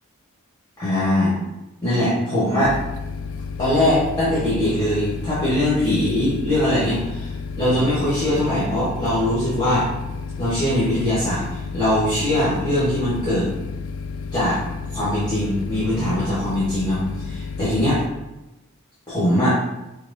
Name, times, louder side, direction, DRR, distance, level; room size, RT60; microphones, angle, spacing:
voice 1, 0.8-1.4 1.8-2.8 3.6-9.9 10.4-13.5 14.3-14.6 14.9-18.0 19.1-19.6, left 1 dB, 20° left, -10 dB, 1.2 m, -21 dB
sound 1, 2.6-18.1, left 5 dB, 65° left, 0.3 m, -32 dB
5.7 x 2.3 x 2.6 m, 0.97 s
head